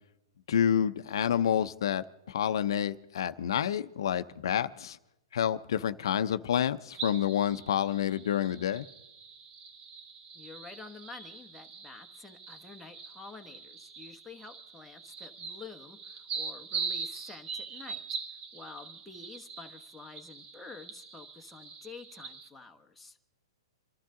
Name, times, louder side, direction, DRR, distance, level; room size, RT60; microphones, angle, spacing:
voice 1, 0.5-5.0 5.3-8.8, left 9 dB, 70° left, 11 dB, 0.6 m, -29 dB
sound 1, 6.9-22.5, right 5 dB, 30° right, 1.3 m, -42 dB
voice 2, 10.3-18.0 18.5-23.2, left 4 dB, 5° left, 2 dB, 1.1 m, -49 dB
27.0 x 12.0 x 3.8 m, 0.90 s
hypercardioid pair, 145°, 3 cm